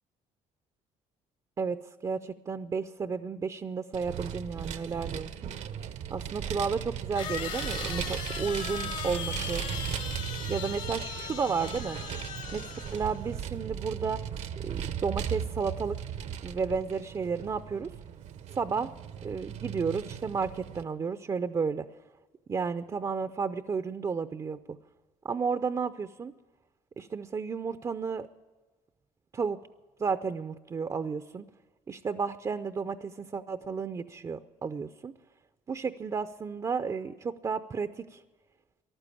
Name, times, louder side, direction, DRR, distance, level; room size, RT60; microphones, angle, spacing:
voice 1, 1.6-5.3 6.1-9.6 10.5-12.0 12.5-14.2 14.6-16.0 16.4-17.9 18.5-18.9 19.2-21.9 22.5-24.6 25.2-26.3 27.0-28.3 29.3-29.6 30.0-31.5 31.9-35.1 35.7-38.2, right 5 dB, 30° right, 11 dB, 0.6 m, -32 dB
Vehicle, 3.9-20.8, right 9 dB, 60° right, 0.8 m, -37 dB
sound 1, 5.5-5.6 7.2-13.3, left 8 dB, 65° left, 2.2 m, -39 dB
14.5 x 11.5 x 8.5 m, 1.3 s
cardioid pair, 105°, 13 cm